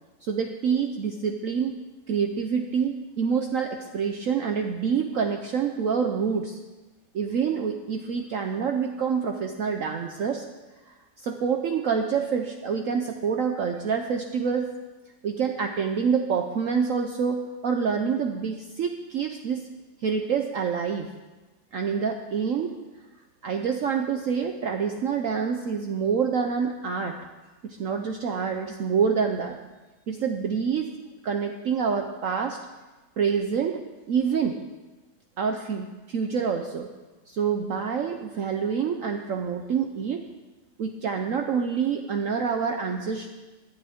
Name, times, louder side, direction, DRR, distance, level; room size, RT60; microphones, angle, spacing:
voice 1, 0.2-1.7 2.1-6.6 7.1-10.4 10.9-14.7 15.2-19.7 20.0-21.1 21.7-22.8 23.4-27.2 27.6-29.6 30.1-30.9 31.2-32.6 33.2-33.8 34.1-34.6 35.4-36.9 37.3-40.3 40.8-43.3, right 6 dB, 60° right, 4 dB, 1.0 m, -27 dB
17.5 x 11.0 x 3.6 m, 1.2 s
omnidirectional pair, 1.8 m